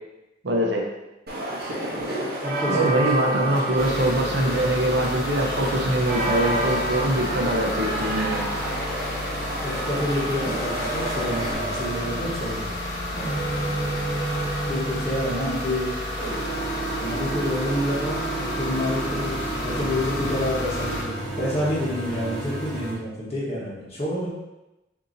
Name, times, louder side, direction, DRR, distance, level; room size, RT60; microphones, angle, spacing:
voice 1, 0.4-0.8 2.7-8.5, right 1 dB, 80° right, 0 dB, 0.8 m, -23 dB
sound 1, 1.3-11.5, right 1 dB, 55° right, 0.9 m, -30 dB
voice 2, 2.4-2.9 9.6-12.7 14.7-16.0 17.0-19.4 19.6-24.3, left 1 dB, 35° left, -7 dB, 1.4 m, -28 dB
sound 2, 3.8-21.0, left 1 dB, 65° left, 1.1 m, -31 dB
sound 3, 10.4-22.9, right 2 dB, 5° left, 1.2 m, -32 dB
6.6 x 2.8 x 2.7 m, 0.99 s
head